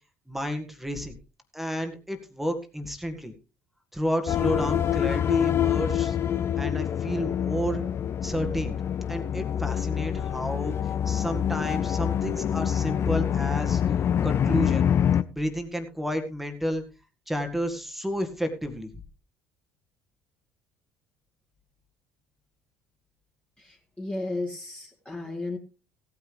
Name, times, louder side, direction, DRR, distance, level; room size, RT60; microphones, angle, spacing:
voice 1, 0.3-1.2 1.5-3.3 3.9-6.2 6.6-7.8 8.2-8.8 9.1-10.8 11.1-13.8 14.2-14.9 15.4-16.8 17.3-18.9, equal, 5° right, 6 dB, 1.9 m, -31 dB
sound 1, 4.3-15.2, left 9 dB, 40° left, 0.7 m, -26 dB
voice 2, 23.6-25.6, left 2 dB, 15° left, -2 dB, 2.6 m, -34 dB
17.0 x 9.6 x 3.3 m, 0.32 s
figure-of-eight pair, 55°, 7 cm